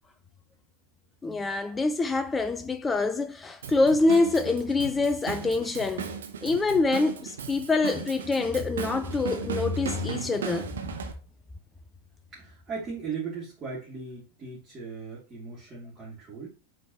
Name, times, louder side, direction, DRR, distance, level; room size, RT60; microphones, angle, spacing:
voice 1, 1.2-6.1 6.4-10.7, left 3 dB, 15° left, 0.4 m, -25 dB
Drum kit / Drum, 3.6-11.1, right 7 dB, 65° right, 1.0 m, -37 dB
voice 2, 12.3-16.5, right 5 dB, 20° right, 2.4 m, -38 dB
8.4 x 4.0 x 3.0 m
figure-of-eight pair, 90°, 0 cm